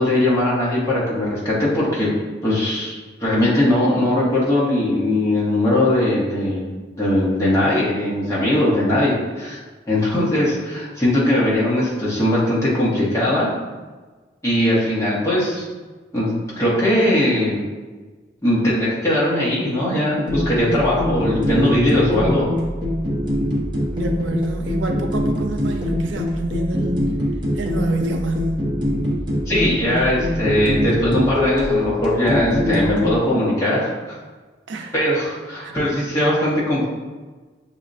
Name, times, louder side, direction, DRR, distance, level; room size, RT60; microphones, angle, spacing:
voice 1, 0.0-2.1 2.4-2.9 3.2-6.7 7.0-9.6 9.9-13.5 14.4-15.6 16.1-17.6 18.4-22.5 29.5-33.9 34.9-36.8, left 1 dB, 15° left, -8 dB, 1.0 m, -20 dB
sound 1, 20.3-33.2, left 1 dB, 25° right, 0.7 m, -23 dB
voice 2, 23.9-27.1 27.6-28.6 34.7-34.9 35.6-35.7, right 2 dB, 90° right, 4 dB, 0.5 m, -28 dB
6.0 x 2.1 x 2.5 m, 1.3 s
head